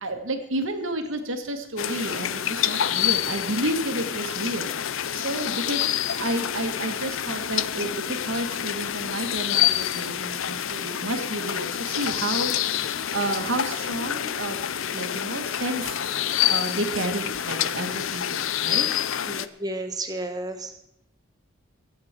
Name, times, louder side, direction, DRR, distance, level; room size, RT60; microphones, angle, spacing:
voice 1, 0.0-4.7 5.1-16.0 16.5-18.9, right 1 dB, 70° right, 6 dB, 1.8 m, -31 dB
sound 1, 1.8-19.5, left 10 dB, 70° left, 0.6 m, -27 dB
voice 2, 19.3-20.8, right 2 dB, 20° right, 6 dB, 1.4 m, -32 dB
22.5 x 8.6 x 4.5 m, 0.78 s
head